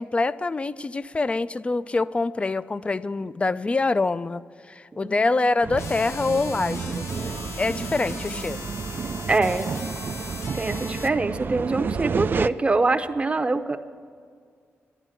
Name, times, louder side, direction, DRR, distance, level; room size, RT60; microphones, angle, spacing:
voice 1, 0.0-7.0 7.6-8.7, left 3 dB, 25° left, 16 dB, 0.4 m, -25 dB
voice 2, 4.9-5.3 7.7-8.1 9.3-9.7 10.5-13.8, right 3 dB, 25° right, 8 dB, 0.7 m, -25 dB
sound 1, 5.6-12.5, right 5 dB, 50° right, 0.3 m, -30 dB
sound 2, 5.8-11.1, left 5 dB, 80° left, 0.7 m, -39 dB
11.0 x 10.5 x 9.1 m, 2.1 s
cardioid pair, 85°, 5 cm